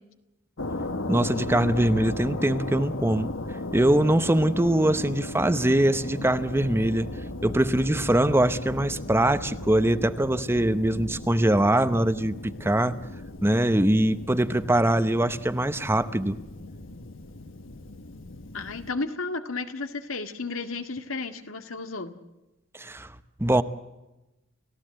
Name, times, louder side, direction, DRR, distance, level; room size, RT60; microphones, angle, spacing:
sound 1, 0.6-18.9, left 2 dB, 70° left, 1.3 m, -36 dB
voice 1, 1.1-3.3 3.7-7.1 7.4-13.0 13.4-16.4 22.7-23.6, right 1 dB, 10° right, 12 dB, 0.8 m, -23 dB
voice 2, 18.5-22.1, left 3 dB, 90° left, 7 dB, 2.0 m, -33 dB
30.0 x 16.0 x 7.7 m, 1.0 s
head